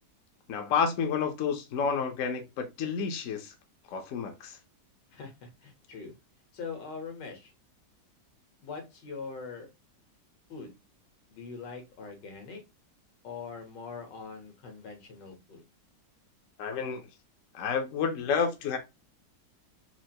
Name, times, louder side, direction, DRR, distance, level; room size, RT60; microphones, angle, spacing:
voice 1, 0.5-3.5 3.9-4.6 16.6-17.0 17.5-18.8, left 6 dB, 60° left, 0.9 m, -30 dB
voice 2, 5.1-6.1 6.5-7.5 8.6-9.7 10.5-10.7 11.3-12.6 13.2-15.6, left 5 dB, 80° left, 1.8 m, -42 dB
4.4 x 2.5 x 2.8 m
omnidirectional pair, 1.9 m